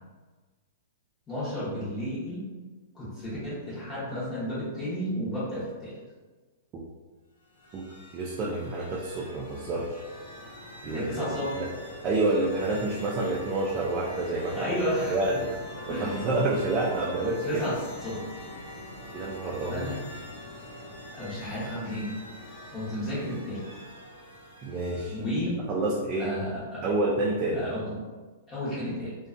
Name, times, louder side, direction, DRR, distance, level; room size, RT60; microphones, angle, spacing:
voice 1, 1.3-2.5 2.9-6.0 10.9-11.6 14.5-15.2 15.8-16.3 17.5-18.2 19.7-20.0 21.1-22.1 22.7-23.6 25.1-25.6 26.2-26.9 27.5-28.0 28.5-29.2, equal, 15° left, -10 dB, 0.9 m, -32 dB
sound 1, 7.4-25.6, left 1 dB, 65° left, 0.8 m, -44 dB
voice 2, 8.1-10.0 10.8-11.1 11.6-11.7 12.0-14.8 15.1-15.5 15.9-17.6 19.1-19.9 24.6-25.2 25.7-26.3 26.8-27.6, right 2 dB, 25° right, -3 dB, 0.3 m, -28 dB
2.5 x 2.2 x 2.4 m, 1.3 s
hypercardioid pair, 150°, 0 cm